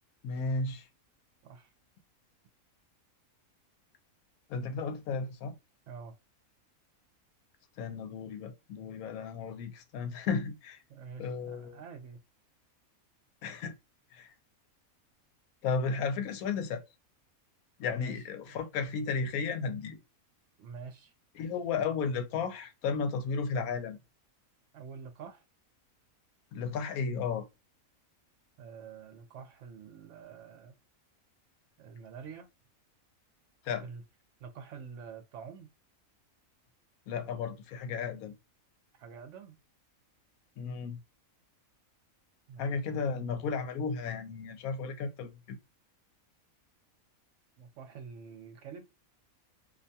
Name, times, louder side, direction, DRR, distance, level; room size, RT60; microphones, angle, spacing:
voice 1, 0.2-0.9 4.5-5.5 7.8-10.8 11.2-11.8 13.4-13.7 14.1-14.3 15.6-16.8 17.8-20.0 21.3-24.0 26.5-27.5 33.6-33.9 37.1-38.3 40.6-41.0 42.6-45.6, left 5 dB, 85° left, 1.1 m, -34 dB
voice 2, 10.9-12.2 17.9-18.6 20.6-21.1 24.7-25.4 28.6-30.8 31.8-32.5 33.8-34.0 34.4-35.7 39.0-39.6 42.5-43.0 47.6-48.9, right 6 dB, 65° right, 0.8 m, -47 dB
2.6 x 2.2 x 2.6 m
omnidirectional pair, 1.5 m